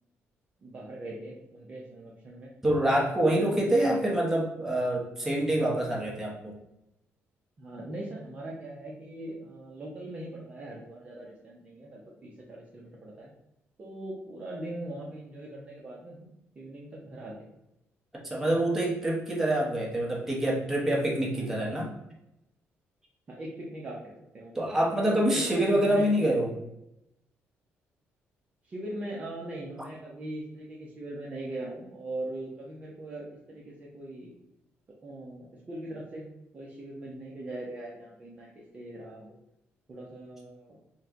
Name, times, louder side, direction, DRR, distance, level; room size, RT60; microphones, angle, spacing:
voice 1, 0.6-2.5 3.2-4.0 7.6-13.3 13.8-17.4 21.4-21.5 23.3-24.7 25.0-26.1 28.6-34.3 35.0-36.3 36.5-39.3 39.9-40.8, right 1 dB, 30° right, -4 dB, 0.6 m, -41 dB
voice 2, 2.6-6.5 18.2-21.9 24.5-26.5, right 1 dB, 10° right, -3 dB, 0.9 m, -26 dB
4.2 x 2.2 x 3.6 m, 0.86 s
cardioid pair, 145°, 5 cm